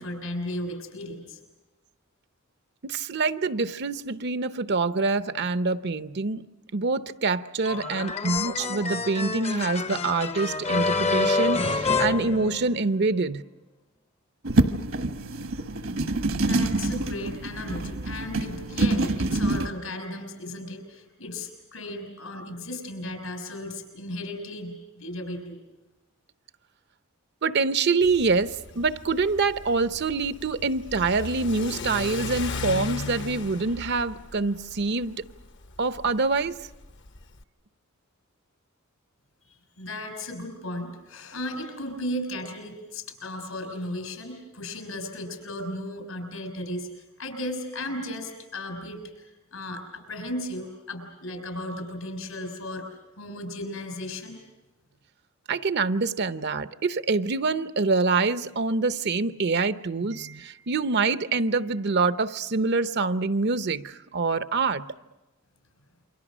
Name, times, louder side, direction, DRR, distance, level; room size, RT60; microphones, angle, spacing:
voice 1, 0.0-1.4 16.4-25.6 39.4-49.3 49.5-52.9 53.2-54.4, left 1 dB, 80° left, 6.1 m, -35 dB
voice 2, 2.8-6.4 6.7-13.4 27.4-35.2 35.8-36.5 55.5-64.9, right 4 dB, 50° right, 0.7 m, -25 dB
sound 1, 7.7-13.0, left 4 dB, 30° left, 0.7 m, -27 dB
sound 2, 14.4-19.7, right 2 dB, 70° right, 1.3 m, -26 dB
Car / Accelerating revving vroom, 28.0-37.4, left 3 dB, 55° left, 1.0 m, -37 dB
28.5 x 24.0 x 6.2 m
head